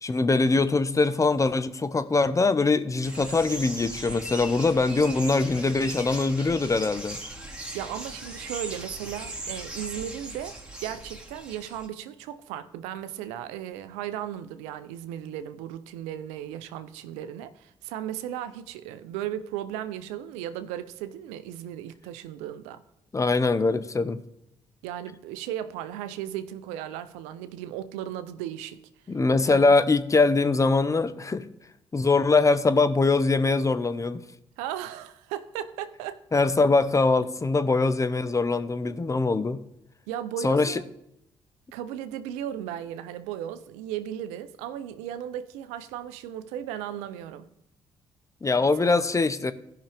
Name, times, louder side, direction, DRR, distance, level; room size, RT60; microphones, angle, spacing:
voice 1, 0.0-7.2 23.1-24.2 29.1-31.5 31.9-34.2 36.3-39.6 40.4-40.8 48.4-49.5, left 3 dB, 30° left, 0.8 m, -22 dB
sound 1, 3.0-11.9, right 2 dB, 5° right, 2.4 m, -39 dB
voice 2, 7.7-22.8 24.8-28.8 29.5-29.7 34.6-36.2 40.1-40.8 41.7-47.5 48.8-49.0, right 11 dB, 90° right, 0.5 m, -36 dB
15.5 x 5.8 x 3.4 m
hypercardioid pair, 50°, 11 cm